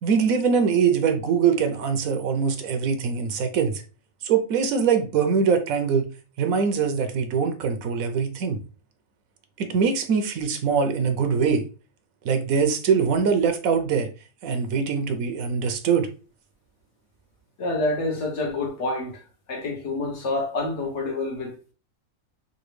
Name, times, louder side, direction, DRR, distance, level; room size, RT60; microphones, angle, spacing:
voice 1, 0.0-3.8 4.2-6.1 6.4-8.6 9.6-11.6 12.2-14.1 14.4-16.1, right 6 dB, 80° right, 1.1 m, -23 dB
voice 2, 17.6-19.2 19.5-21.7, left 2 dB, 60° left, 1.1 m, -28 dB
3.9 x 2.3 x 3.1 m
omnidirectional pair, 1.5 m